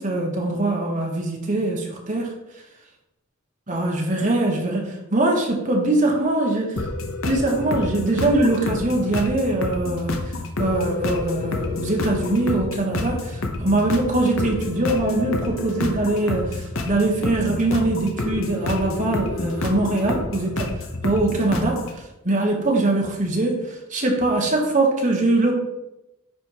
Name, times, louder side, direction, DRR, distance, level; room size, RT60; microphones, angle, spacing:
voice 1, 0.0-2.3 3.7-6.9 7.2-20.7 21.0-25.5, right 2 dB, 35° right, 0 dB, 1.4 m, -22 dB
sound 1, 6.8-21.9, left 2 dB, 65° left, 0.9 m, -28 dB
10.0 x 3.6 x 4.8 m, 0.95 s
head